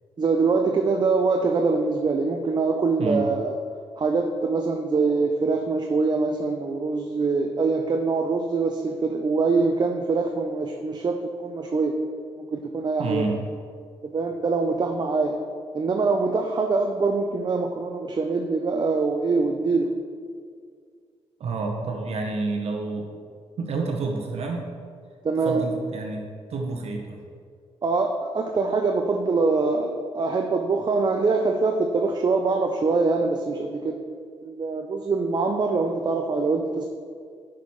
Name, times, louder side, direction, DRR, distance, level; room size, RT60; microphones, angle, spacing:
voice 1, 0.2-3.6 4.0-11.9 12.4-13.4 14.0-15.4 15.7-19.9 25.2-25.7 27.8-33.9 34.4-36.9, right 4 dB, 40° right, 3 dB, 0.6 m, -24 dB
voice 2, 13.0-13.4 21.4-23.1 23.6-24.6 25.4-27.2, right 3 dB, 65° right, 1 dB, 0.9 m, -29 dB
6.0 x 5.0 x 5.6 m, 2.1 s
cardioid pair, 80°, 11 cm